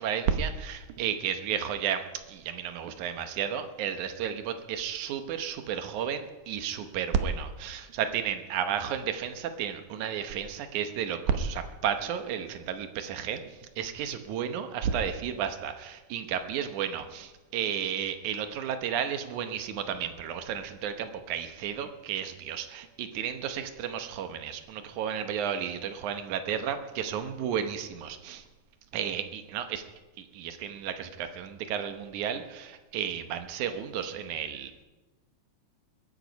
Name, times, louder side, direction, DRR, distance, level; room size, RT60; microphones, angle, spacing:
voice 1, 0.0-28.4 28.9-29.8 30.2-34.8, right 8 dB, 75° right, 8 dB, 2.5 m, -32 dB
21.5 x 9.3 x 5.3 m, 1.2 s
omnidirectional pair, 3.5 m